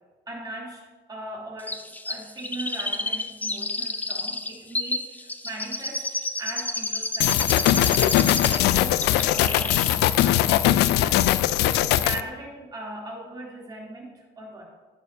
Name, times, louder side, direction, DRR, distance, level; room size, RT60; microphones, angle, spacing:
voice 1, 0.3-11.3 11.6-14.6, right 1 dB, 25° right, -3 dB, 3.0 m, -39 dB
Chirp tweet, 1.7-8.7 9.0-9.9 10.2-10.3, left 2 dB, 10° left, 0.6 m, -30 dB
sound 1, 7.2-12.2, left 13 dB, 80° left, 0.4 m, -20 dB
16.5 x 6.8 x 2.7 m, 1.4 s
cardioid pair, 110°, 17 cm